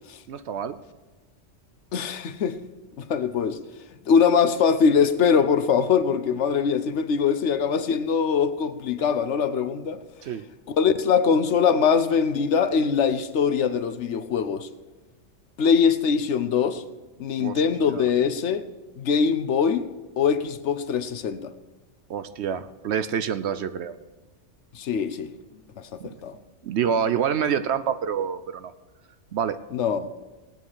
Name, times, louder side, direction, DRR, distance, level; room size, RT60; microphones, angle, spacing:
voice 1, 0.3-0.8 10.2-10.5 17.4-17.6 17.9-18.1 22.1-23.9 26.0-26.1 26.6-28.7 29.3-29.6, right 8 dB, 70° right, 12 dB, 0.9 m, -27 dB
voice 2, 1.9-2.6 3.0-3.6 4.1-10.0 10.7-14.7 15.6-16.8 17.2-18.6 19.0-19.9 20.2-21.5 24.7-25.3 25.8-26.4 29.7-30.1, left 6 dB, 70° left, 11 dB, 1.1 m, -22 dB
17.5 x 9.2 x 4.7 m, 1.2 s
omnidirectional pair, 1.3 m